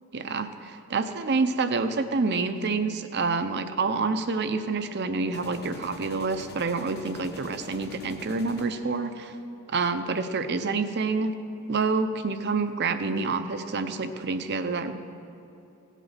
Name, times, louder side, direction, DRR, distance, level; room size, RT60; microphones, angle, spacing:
voice 1, 0.1-9.4 9.7-11.3 11.7-15.0, right 4 dB, 55° right, 9 dB, 0.7 m, -28 dB
sound 1, 0.6-0.7 5.3-9.5, left 2 dB, 50° left, 1.1 m, -46 dB
17.0 x 8.2 x 5.8 m, 2.9 s
head